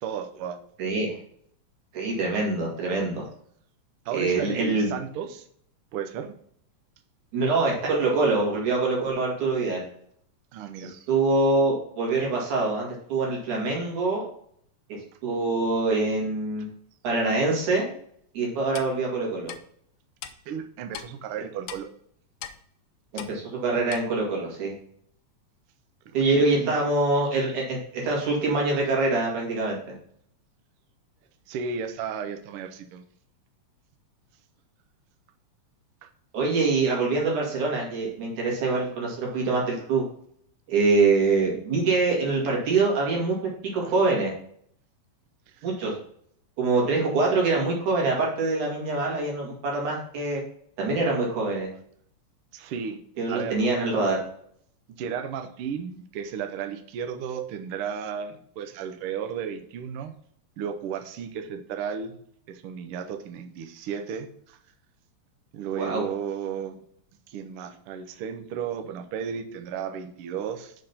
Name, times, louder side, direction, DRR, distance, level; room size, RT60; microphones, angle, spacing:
voice 1, 0.0-0.6 4.0-5.5 5.9-6.3 10.5-11.1 20.5-21.9 26.1-26.3 26.6-26.8 31.5-33.0 43.8-43.9 45.5-45.7 52.5-53.0 53.3-53.6 54.9-60.1 60.6-62.2 62.5-64.6 65.5-66.8 67.3-70.7, right 7 dB, 75° right, 7 dB, 1.3 m, -34 dB
voice 2, 0.8-1.1 1.9-3.2 4.1-5.0 7.3-9.9 11.1-14.2 14.9-16.7 17.0-17.9 18.3-19.5 23.1-24.7 26.1-29.8 36.3-40.0 40.7-43.4 43.6-44.3 45.6-45.9 46.6-50.4 50.8-51.7 53.2-54.2 65.8-66.0, right 3 dB, 90° right, -2 dB, 3.6 m, -24 dB
Clock, 18.7-18.9 19.5-19.6 20.2-20.3 20.9-21.1 21.7-21.8 22.4-22.6 23.2-23.3 23.9-24.0, left 10 dB, 75° left, 1.5 m, -38 dB
6.4 x 4.1 x 5.7 m, 0.64 s
omnidirectional pair, 3.3 m